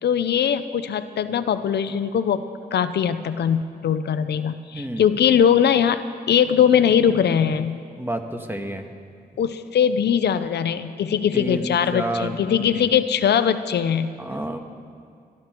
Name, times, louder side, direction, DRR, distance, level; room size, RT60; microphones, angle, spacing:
voice 1, 0.0-2.4 2.7-6.0 6.3-7.8 9.4-14.1, left 8 dB, 80° left, 11 dB, 0.6 m, -21 dB
voice 2, 8.0-8.9 11.3-12.9 14.2-14.6, right 1 dB, 15° right, 4 dB, 1.6 m, -30 dB
22.5 x 12.5 x 4.5 m, 2.3 s
cardioid pair, 70°, 17 cm